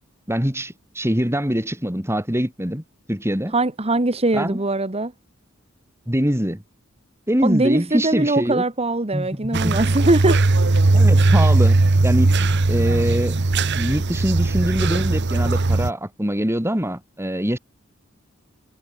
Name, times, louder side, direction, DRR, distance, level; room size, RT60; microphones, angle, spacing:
voice 1, 0.3-2.8 3.1-3.5 4.3-4.6 6.1-6.6 7.3-8.6 9.1-9.8 10.9-12.3 12.7-13.4 13.8-17.6, equal, 10° right, 5.5 m, -24 dB
voice 2, 3.5-5.1 7.4-10.4, right 2 dB, 30° right, 1.7 m, -21 dB
sound 1, 9.5-15.9, right 2 dB, 55° right, 1.0 m, -18 dB
head